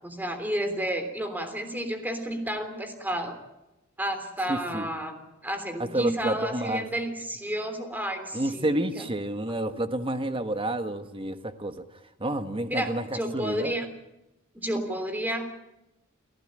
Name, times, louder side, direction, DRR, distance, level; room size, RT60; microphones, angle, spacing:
voice 1, 0.0-3.3 4.0-8.7 9.0-9.1 12.7-12.9 13.1-13.9 14.5-15.5, right 1 dB, 10° right, 7 dB, 3.3 m, -31 dB
voice 2, 4.5-4.9 5.8-6.8 8.3-13.7, right 1 dB, 25° right, 9 dB, 1.4 m, -29 dB
29.0 x 15.0 x 8.9 m, 0.95 s
head